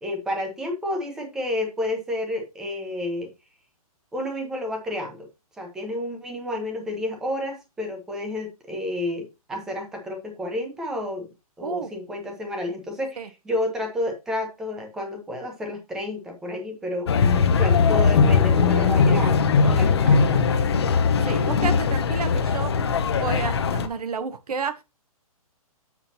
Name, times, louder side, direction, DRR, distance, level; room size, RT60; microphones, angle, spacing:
voice 1, 0.0-3.3 4.1-5.3 5.6-11.3 11.6-17.1 17.6-19.3 19.6-20.4, left 1 dB, 5° right, 0.7 m, -30 dB
sound 1, 17.1-23.9, left 5 dB, 45° left, 0.7 m, -20 dB
voice 2, 21.3-22.7 23.1-24.8, right 5 dB, 85° right, 1.0 m, -31 dB
7.3 x 5.5 x 2.8 m
hypercardioid pair, 175°, 19 cm